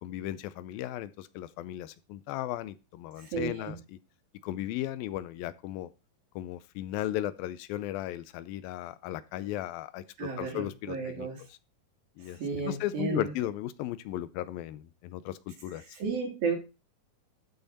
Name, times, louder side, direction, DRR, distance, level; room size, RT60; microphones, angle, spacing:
voice 1, 0.0-3.8 4.4-5.9 6.4-11.3 12.2-15.8, left 13 dB, 85° left, 15 dB, 2.5 m, -36 dB
voice 2, 3.2-3.7 10.2-11.4 12.2-13.3 15.9-16.6, right 4 dB, 75° right, 1 dB, 4.8 m, -33 dB
12.5 x 5.8 x 4.1 m, 0.28 s
omnidirectional pair, 4.2 m